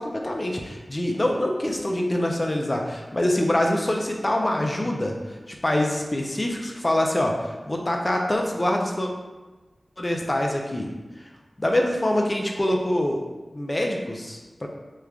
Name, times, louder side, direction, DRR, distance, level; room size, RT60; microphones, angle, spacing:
voice 1, 0.0-9.1 10.0-10.9 11.2-11.3 11.6-13.2 13.5-14.7, left 1 dB, 30° left, 1 dB, 0.4 m, -25 dB
3.1 x 2.4 x 3.4 m, 1.2 s
wide cardioid pair, 60°, 0 cm